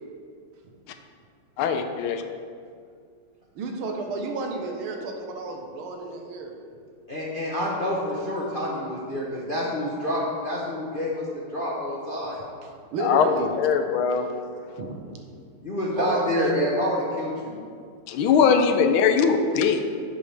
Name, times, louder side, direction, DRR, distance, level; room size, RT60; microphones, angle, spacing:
voice 1, 1.6-2.2 13.0-13.3 13.6-14.3 18.1-19.8, left 6 dB, 80° left, 8 dB, 1.4 m, -21 dB
voice 2, 3.6-6.5 12.6-13.5 14.8-15.0 16.0-16.7, right 3 dB, 80° right, 2 dB, 1.8 m, -31 dB
voice 3, 7.1-11.3 11.5-12.4 15.6-17.6, left 1 dB, 45° left, -5 dB, 0.7 m, -28 dB
10.0 x 7.8 x 3.3 m, 2.2 s
omnidirectional pair, 2.4 m